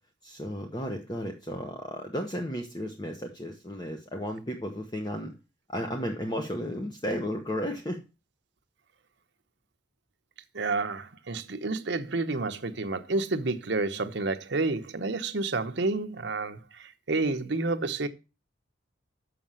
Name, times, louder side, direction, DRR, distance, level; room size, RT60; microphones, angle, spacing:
voice 1, 0.2-5.3 5.7-8.0, equal, 20° left, 1.0 m, -34 dB
voice 2, 10.5-18.1, right 3 dB, 65° right, 0.9 m, -30 dB
6.9 x 6.4 x 7.5 m
head